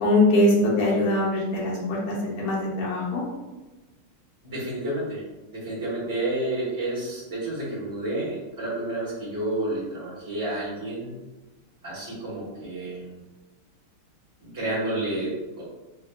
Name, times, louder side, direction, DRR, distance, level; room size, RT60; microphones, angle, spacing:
voice 1, 0.0-3.2, left 1 dB, 70° left, -4 dB, 1.8 m, -22 dB
voice 2, 4.4-5.2 5.5-11.2 11.8-13.1 14.4-15.6, right 1 dB, 10° right, -7 dB, 1.1 m, -30 dB
4.5 x 3.1 x 2.4 m, 1.1 s
omnidirectional pair, 2.3 m